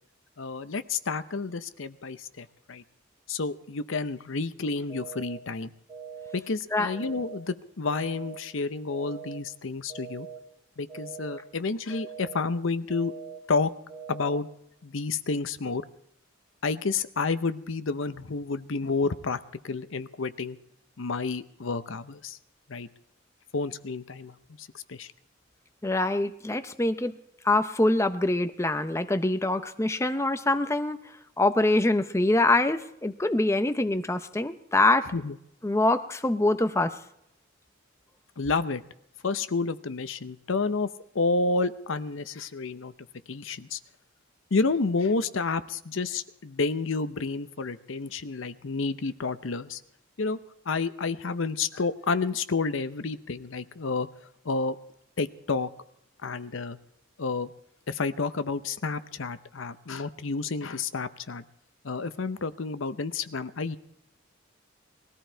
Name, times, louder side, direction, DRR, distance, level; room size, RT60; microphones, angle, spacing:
voice 1, 0.4-2.8 3.3-5.7 6.3-10.3 10.8-13.1 13.5-13.7 14.1-14.5 14.8-15.8 16.6-20.6 21.0-22.4 22.7-22.9 23.5-25.1 35.1-35.4 38.4-38.8 39.2-40.9 41.1-42.9 43.3-43.8 44.5-49.8 50.2-50.4 50.7-54.1 54.4-54.8 55.2-55.7 56.2-56.8 57.2-57.5 57.9-61.4 61.8-63.8, left 4 dB, 70° left, 12 dB, 0.7 m, -30 dB
sound 1, 4.9-5.4 5.9-6.4 6.9-7.4 7.9-8.4 8.9-9.4 9.9-10.4 10.9-11.4 11.9-12.4 12.9-13.4 13.9-14.4, right 6 dB, 20° right, 2.4 m, -42 dB
voice 2, 25.8-27.1 27.4-31.0 31.4-35.1 35.6-37.0, left 2 dB, 15° left, 9 dB, 0.6 m, -24 dB
20.0 x 14.5 x 4.5 m, 0.78 s
head